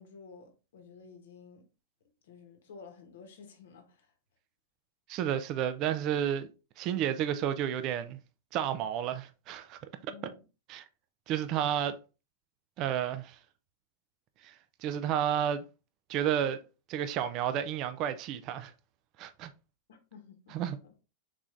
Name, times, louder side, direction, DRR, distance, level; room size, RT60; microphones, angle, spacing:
voice 1, 0.0-1.7 2.2-4.1 10.1-10.4 19.9-20.9, left 5 dB, 75° left, 0.9 m, -52 dB
voice 2, 5.1-6.5 6.8-8.2 8.5-9.8 10.7-10.9 11.3-12.0 12.8-13.4 14.4-14.6 14.8-15.6 16.1-16.6 16.9-18.7 19.2-19.5 20.5-20.8, right 10 dB, 45° right, 0.3 m, -31 dB
3.7 x 3.0 x 2.4 m
hypercardioid pair, 105°, 0 cm